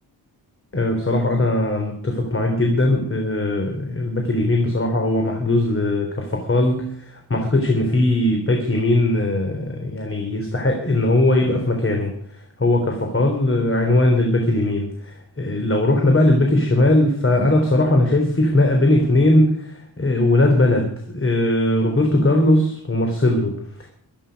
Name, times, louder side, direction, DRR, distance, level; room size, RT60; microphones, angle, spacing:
voice 1, 0.7-12.1 12.6-23.9, left 1 dB, 30° left, 3 dB, 3.4 m, -19 dB
23.0 x 10.0 x 5.3 m, 0.64 s
wide cardioid pair, 95°, 40 cm